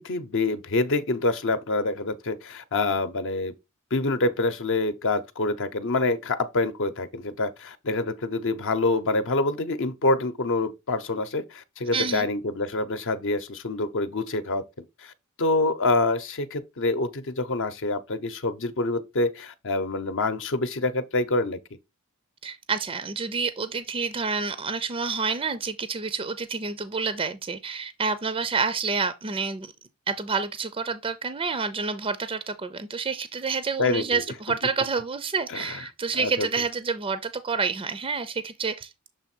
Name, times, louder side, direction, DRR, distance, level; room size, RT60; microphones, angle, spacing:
voice 1, 0.0-3.5 3.9-14.6 15.0-15.1 15.4-21.6 33.8-34.2 35.5-35.8 36.1-36.5, left 2 dB, 60° left, 0.8 m, -26 dB
voice 2, 11.9-12.3 22.4-29.7 30.1-38.9, right 5 dB, 25° right, 0.4 m, -28 dB
6.8 x 3.3 x 4.4 m
head